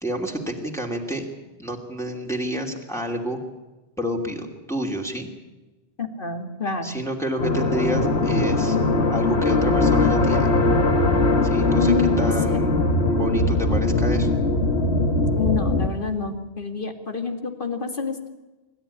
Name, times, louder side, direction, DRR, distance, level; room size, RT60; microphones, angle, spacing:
voice 1, 0.0-1.3 1.6-3.4 4.0-5.3 6.8-8.8 9.1-10.5 11.4-12.7 13.1-14.3, right 1 dB, 5° left, 0 dB, 2.8 m, -29 dB
voice 2, 6.0-7.0 11.8-12.6 15.3-18.3, left 5 dB, 55° left, 6 dB, 2.4 m, -27 dB
sound 1, 7.4-15.9, left 2 dB, 90° left, 2.1 m, -20 dB
26.5 x 13.0 x 10.0 m, 1.1 s
omnidirectional pair, 1.1 m